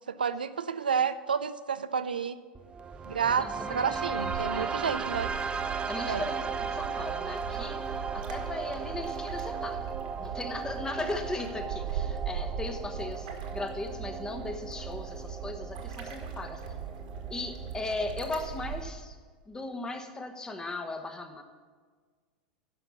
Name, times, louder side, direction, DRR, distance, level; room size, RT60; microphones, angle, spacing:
voice 1, 0.1-2.4 3.1-5.3 6.1-6.2, right 6 dB, 90° right, 12 dB, 0.4 m, -30 dB
sound 1, 2.5-18.5, right 5 dB, 20° right, 0.6 m, -37 dB
voice 2, 3.4-4.8 5.9-9.9 10.2-16.8 17.3-19.2 19.4-21.4, left 2 dB, 15° left, 6 dB, 1.2 m, -37 dB
sound 2, 3.9-18.8, right 7 dB, 70° right, 1.7 m, -39 dB
11.0 x 5.8 x 7.0 m, 1.5 s
hypercardioid pair, 90°, 5 cm